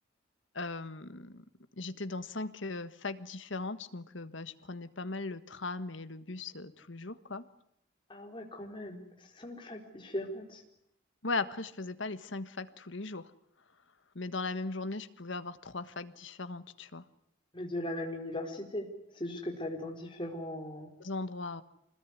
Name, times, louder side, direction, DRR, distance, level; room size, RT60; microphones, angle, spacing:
voice 1, 0.5-1.4 1.8-7.4 11.2-13.3 14.1-17.0 21.0-21.6, left 3 dB, 70° left, 11 dB, 1.5 m, -38 dB
voice 2, 8.1-9.0 9.4-10.6 17.5-18.9 19.1-20.9, left 1 dB, 25° left, 2 dB, 4.3 m, -38 dB
26.0 x 20.0 x 9.7 m, 0.78 s
head